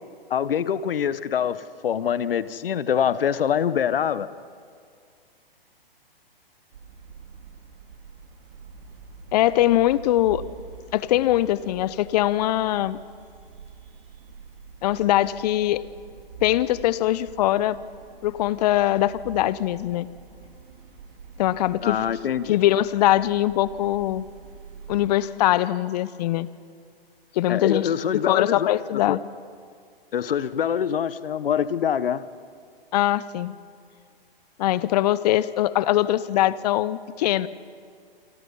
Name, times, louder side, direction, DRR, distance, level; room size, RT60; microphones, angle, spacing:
voice 1, 0.3-4.3 21.8-22.6 27.5-28.7 29.1-29.2 30.1-32.2, left 8 dB, 70° left, 16 dB, 1.2 m, -24 dB
sound 1, 6.7-25.1, right 6 dB, 60° right, 3.2 m, -46 dB
voice 2, 9.3-10.4 10.9-13.0 14.8-15.8 16.4-17.8 18.2-20.1 21.4-22.0 22.5-24.3 24.9-26.5 27.3-27.9 28.3-29.2 32.9-33.5 34.6-37.5, left 14 dB, 45° left, 18 dB, 0.9 m, -22 dB
28.0 x 24.5 x 5.6 m, 2.2 s
hypercardioid pair, 125°, 30 cm